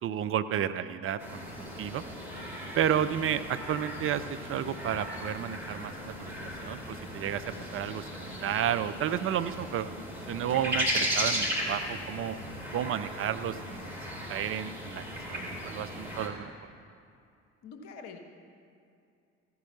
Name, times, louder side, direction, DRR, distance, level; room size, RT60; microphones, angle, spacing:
voice 1, 0.0-2.0 2.8-7.4 7.7-9.9 10.3-12.4 12.7-13.9 14.3-16.5, right 9 dB, 40° right, 11 dB, 0.5 m, -32 dB
sound 1, 1.2-16.3, equal, 80° right, 2.1 m, -36 dB
voice 2, 2.2-2.5 17.6-18.2, left 5 dB, 65° left, 5 dB, 1.4 m, -46 dB
15.0 x 9.4 x 5.9 m, 2.5 s
figure-of-eight pair, 55°, 34 cm